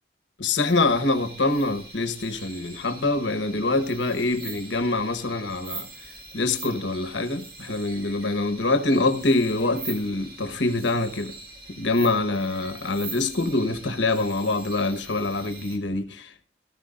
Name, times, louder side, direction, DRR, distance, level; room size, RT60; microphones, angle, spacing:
voice 1, 0.4-5.9 6.3-11.3 11.7-16.4, left 2 dB, 80° left, 1.1 m, -25 dB
sound 1, 0.7-15.8, right 3 dB, 55° right, 2.0 m, -42 dB
18.0 x 13.5 x 2.5 m
head